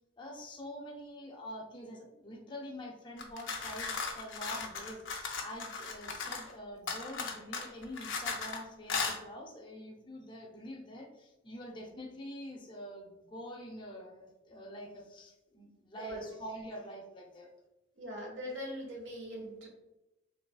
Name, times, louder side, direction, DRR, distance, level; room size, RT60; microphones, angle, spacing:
voice 1, 0.2-17.5, equal, 25° left, 1 dB, 0.5 m, -46 dB
sound 1, 3.2-6.5 6.9-8.6 8.9-9.2, left 4 dB, 75° left, 0.6 m, -37 dB
voice 2, 16.0-16.3 18.0-19.7, equal, 75° right, -1 dB, 1.2 m, -41 dB
4.0 x 3.1 x 2.3 m, 0.97 s
head